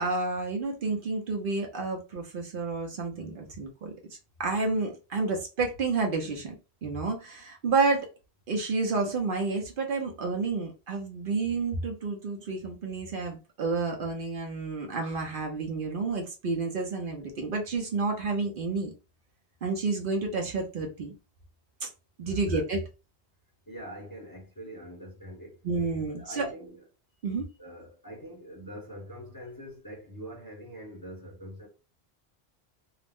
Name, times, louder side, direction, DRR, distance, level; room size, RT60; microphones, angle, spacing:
voice 1, 0.0-3.9 4.4-6.6 6.8-8.1 8.5-18.9 19.6-21.1 21.8-21.9 22.2-22.8 25.6-26.5 27.2-27.5, right 3 dB, 60° right, 0.7 m, -30 dB
voice 2, 23.7-25.6 26.2-26.8 27.6-31.7, equal, 25° left, 0.6 m, -44 dB
2.4 x 2.0 x 3.4 m
omnidirectional pair, 1.1 m